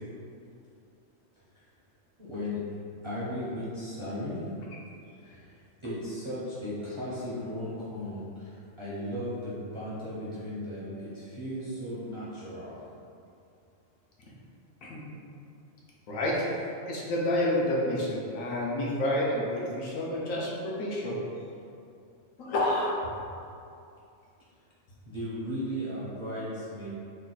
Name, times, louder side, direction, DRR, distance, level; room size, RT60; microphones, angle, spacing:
voice 1, 2.2-2.6 3.0-4.5 5.2-12.8 25.0-26.9, equal, 35° right, -10 dB, 0.5 m, -36 dB
voice 2, 16.1-16.5 16.9-21.2 22.4-23.1, left 1 dB, 90° left, -5 dB, 1.1 m, -29 dB
3.3 x 2.3 x 3.9 m, 2.5 s
omnidirectional pair, 1.4 m